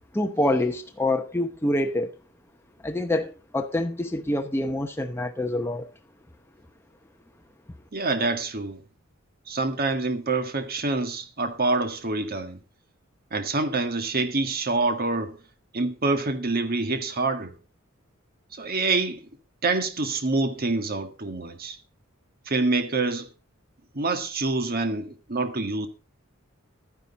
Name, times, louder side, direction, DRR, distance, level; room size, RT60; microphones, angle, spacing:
voice 1, 0.1-2.1 2.8-5.9, left 1 dB, 10° left, 0.8 m, -26 dB
voice 2, 7.9-8.8 9.5-12.6 13.3-15.4 15.7-17.5 18.5-19.2 19.6-21.8 22.5-23.3 23.9-25.9, right 3 dB, 45° right, 1.6 m, -26 dB
12.0 x 9.9 x 4.0 m
head